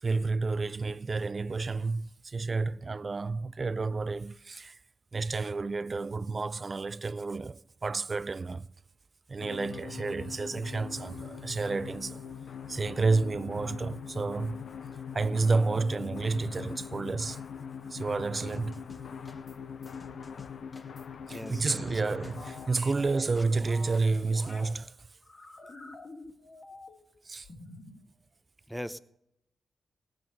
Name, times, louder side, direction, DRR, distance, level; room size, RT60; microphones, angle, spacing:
voice 1, 0.0-4.8 5.1-8.7 9.3-12.2 12.7-14.6 15.1-17.4 17.9-18.8 21.3-24.9 27.3-27.5, right 3 dB, 45° right, 0.5 m, -30 dB
sound 1, 9.4-22.7, left 7 dB, 75° left, 0.7 m, -42 dB
sound 2, 18.5-19.6 19.8-24.5, left 3 dB, 35° left, 1.8 m, -53 dB
voice 2, 21.3-21.9 28.7-29.0, equal, ahead, 0.9 m, -39 dB
sound 3, 22.4-24.7 25.2-27.1 27.4-28.0, left 2 dB, 55° left, 2.7 m, -48 dB
18.5 x 7.9 x 5.3 m
supercardioid pair, 45°, 0 cm